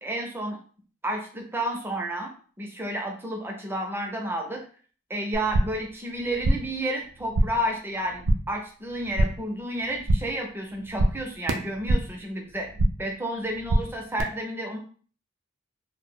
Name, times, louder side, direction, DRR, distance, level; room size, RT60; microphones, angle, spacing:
voice 1, 0.0-0.6 1.0-2.3 2.6-4.6 5.1-12.7 13.0-14.8, right 1 dB, 10° right, 1 dB, 0.4 m, -31 dB
sound 1, 5.3-5.9 6.2-6.8 7.1-7.7 8.0-8.6 8.9-9.5 9.8-10.4 10.7-12.2 12.5-13.1 13.4-14.2, right 1 dB, 70° right, 0.4 m, -26 dB
2.2 x 2.0 x 3.7 m, 0.43 s
head